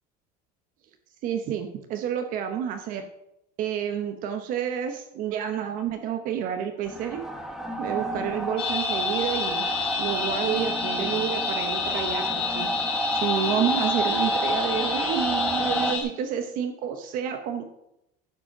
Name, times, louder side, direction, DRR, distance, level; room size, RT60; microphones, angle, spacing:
voice 1, 1.2-3.1 3.6-7.2 7.8-9.6 10.0-12.7 13.1-17.6, right 9 dB, 50° right, 6 dB, 0.9 m, -29 dB
sound 1, 6.9-15.9, right 1 dB, ahead, 0.9 m, -30 dB
sound 2, 8.6-16.0, left 5 dB, 30° left, 3.1 m, -29 dB
11.0 x 5.2 x 6.0 m, 0.81 s
cardioid pair, 175°, 18 cm